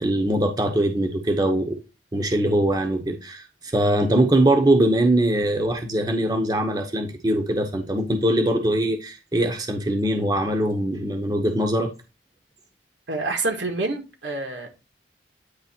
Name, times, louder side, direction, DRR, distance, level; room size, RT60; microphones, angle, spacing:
voice 1, 0.0-1.8 2.1-11.9, right 1 dB, 20° right, 0.9 m, -22 dB
voice 2, 13.1-14.7, right 3 dB, 75° right, 1.7 m, -27 dB
9.4 x 3.3 x 4.4 m
head